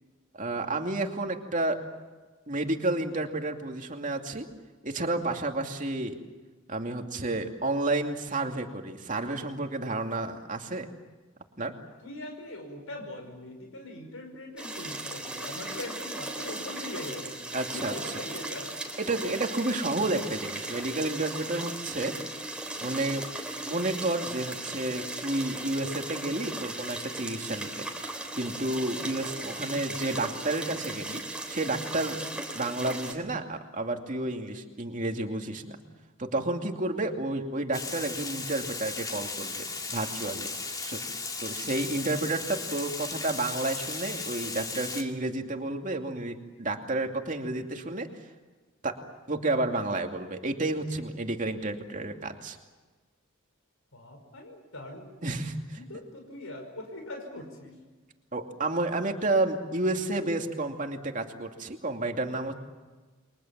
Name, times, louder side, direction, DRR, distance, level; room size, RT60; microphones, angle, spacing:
voice 1, 0.4-1.8 2.5-4.4 4.8-6.2 6.7-10.9 11.6-11.7 17.5-18.1 19.0-22.1 22.8-23.3 23.7-27.9 28.3-31.2 31.5-32.2 32.5-35.8 36.2-40.5 40.8-41.0 41.4-48.1 48.8-49.0 49.3-52.6 55.2-55.8 58.3-62.5, right 2 dB, 40° right, 4 dB, 2.6 m, -31 dB
voice 2, 12.0-17.4 17.7-18.8 28.9-29.3 41.7-41.8 42.1-42.3 53.9-55.0 55.7-57.8, left 1 dB, 80° left, 3 dB, 5.3 m, -41 dB
sound 1, 14.6-33.1, right 2 dB, 5° right, 3.6 m, -37 dB
Water, 37.7-45.0, left 4 dB, 20° left, 2.7 m, -36 dB
29.5 x 24.0 x 7.5 m, 1.3 s
head